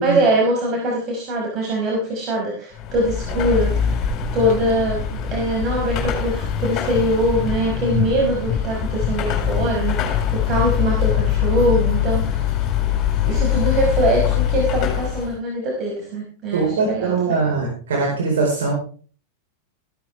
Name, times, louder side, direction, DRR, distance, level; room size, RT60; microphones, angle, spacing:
voice 1, 0.0-3.9 4.3-12.6 13.2-17.4, right 1 dB, 35° right, -2 dB, 5.2 m, -22 dB
Car passing by / Traffic noise roadway noise / Engine, 2.7-15.4, left 9 dB, 30° left, 4.8 m, -23 dB
voice 2, 16.5-18.7, right 4 dB, 65° right, -1 dB, 4.7 m, -21 dB
15.0 x 13.0 x 3.5 m, 0.40 s
figure-of-eight pair, 90°, 0 cm